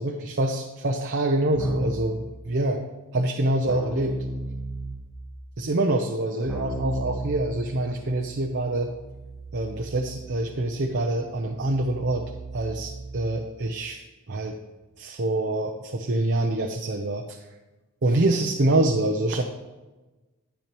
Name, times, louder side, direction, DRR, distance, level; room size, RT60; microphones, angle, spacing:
voice 1, 0.0-2.8 3.1-4.1 5.6-8.9 9.5-12.3 12.5-14.5 15.0-17.4 18.0-19.4, right 2 dB, 50° right, 3 dB, 0.7 m, -25 dB
Keyboard (musical), 1.5-2.2 3.6-5.2 6.4-13.5, right 1 dB, 5° right, 1.2 m, -35 dB
10.5 x 9.9 x 3.0 m, 1.2 s
head